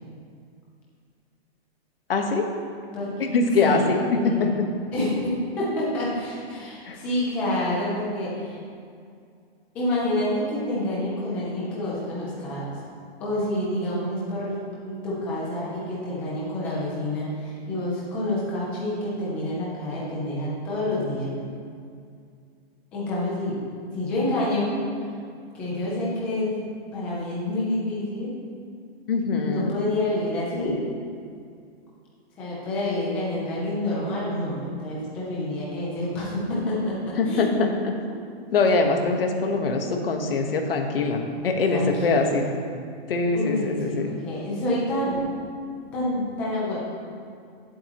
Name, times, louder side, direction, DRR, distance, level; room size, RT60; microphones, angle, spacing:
voice 1, 2.1-2.5 3.2-4.0 6.8-7.0 29.1-29.7 37.2-37.7 38.1-38.2 38.5-42.4 43.1-44.1, left 3 dB, 60° left, 3 dB, 1.4 m, -23 dB
voice 2, 3.6-4.5 4.9-5.1 5.6-8.6 9.7-12.8 13.2-21.4 22.9-23.6 23.9-24.8 25.5-26.6 26.9-28.3 29.4-30.8 32.4-37.5 41.6-42.8 43.3-45.3 45.9-46.8, left 1 dB, 5° left, -7 dB, 0.5 m, -28 dB
16.0 x 7.9 x 3.0 m, 2.3 s
hypercardioid pair, 180°, 32 cm